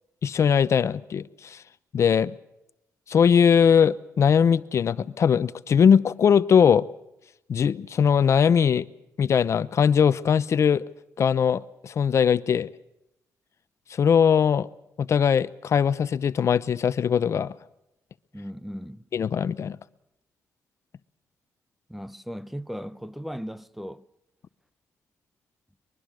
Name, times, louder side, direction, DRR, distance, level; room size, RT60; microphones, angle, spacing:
voice 1, 0.2-1.6 1.9-2.4 3.1-6.9 7.5-8.8 9.2-10.8 11.2-12.7 13.9-14.7 15.0-17.5 19.1-19.8, left 7 dB, 55° left, 0.7 m, -20 dB
voice 2, 18.3-19.1 21.9-24.0, equal, ahead, 0.7 m, -37 dB
24.0 x 22.5 x 6.3 m
cardioid pair, 100°, 6 cm